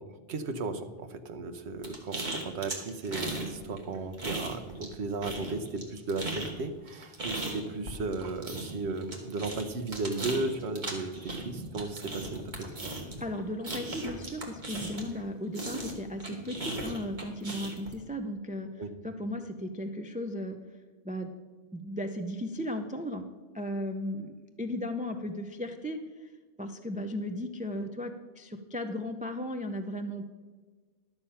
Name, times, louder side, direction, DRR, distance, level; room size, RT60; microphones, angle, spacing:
voice 1, 0.0-12.9 18.8-18.9, right 3 dB, 75° right, 8 dB, 1.1 m, -35 dB
sound 1, 1.8-3.5 3.8-4.9 5.2-15.2 15.5-17.9, right 2 dB, 45° right, 1.7 m, -37 dB
voice 2, 13.2-18.7 19.0-20.6 21.0-21.3 21.7-23.2 23.5-26.3 26.6-30.2, left 1 dB, 10° right, 6 dB, 0.4 m, -36 dB
11.5 x 7.0 x 5.6 m, 1.4 s
omnidirectional pair, 1.1 m